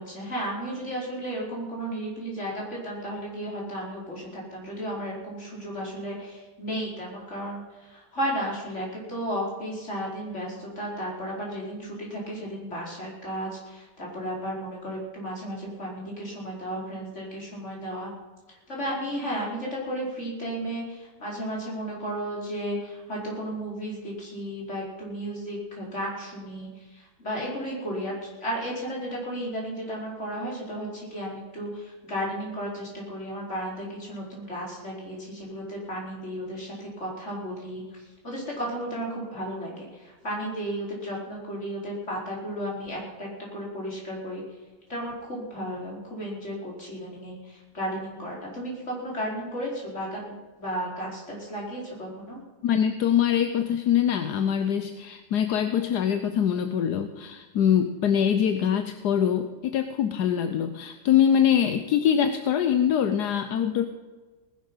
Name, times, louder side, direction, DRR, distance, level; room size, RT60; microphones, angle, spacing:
voice 1, 0.0-18.1 18.7-44.4 44.9-52.4, equal, 45° left, -3 dB, 5.1 m, -34 dB
voice 2, 52.6-63.9, left 9 dB, 80° left, 8 dB, 1.4 m, -23 dB
19.5 x 10.5 x 5.7 m, 1.3 s
omnidirectional pair, 1.8 m